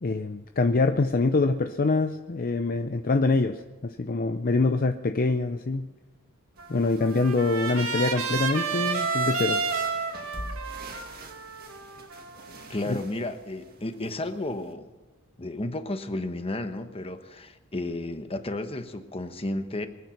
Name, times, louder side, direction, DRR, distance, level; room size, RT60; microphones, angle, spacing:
voice 1, 0.0-5.9 6.7-9.6 12.9-13.0, left 3 dB, 45° left, 8 dB, 0.6 m, -25 dB
sound 1, 6.6-14.7, right 2 dB, 45° right, 1.8 m, -45 dB
Trumpet, 6.6-12.7, right 4 dB, 70° right, 2.1 m, -31 dB
voice 2, 12.7-14.9 15.4-19.9, left 2 dB, 25° left, 8 dB, 1.1 m, -32 dB
24.0 x 9.3 x 5.9 m, 1.2 s
head